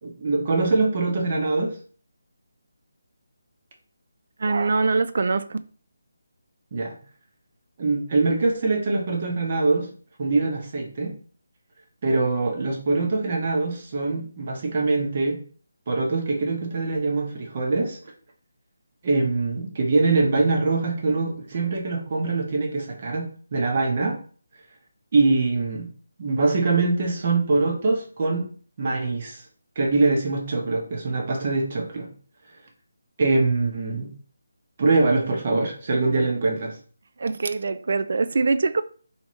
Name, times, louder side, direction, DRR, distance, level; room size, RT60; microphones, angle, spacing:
voice 1, 0.0-1.8 6.7-7.0 7.8-9.9 10.2-11.1 12.0-15.4 15.9-18.0 19.0-24.2 25.1-25.9 26.2-28.5 28.8-29.4 29.8-32.1 33.2-34.1 34.8-36.8, right 3 dB, 40° right, 1.0 m, -23 dB
voice 2, 4.4-5.6 37.2-38.8, right 4 dB, 55° right, 0.3 m, -23 dB
3.4 x 3.0 x 3.1 m
figure-of-eight pair, 160°, 0 cm